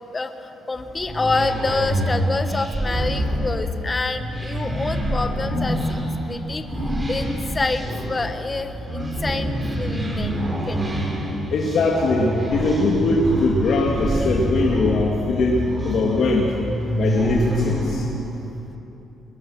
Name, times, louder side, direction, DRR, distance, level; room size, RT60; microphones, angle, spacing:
voice 1, 0.1-6.7 7.1-10.4 10.7-10.8 14.1-14.3, left 3 dB, 25° left, 8 dB, 1.1 m, -27 dB
sound 1, 0.8-18.2, right 1 dB, 20° right, 4.3 m, -26 dB
voice 2, 11.5-15.6 15.8-16.5 16.9-18.1, left 3 dB, 65° left, -2 dB, 2.3 m, -21 dB
22.0 x 21.0 x 6.4 m, 2.9 s
cardioid pair, 115°, 0 cm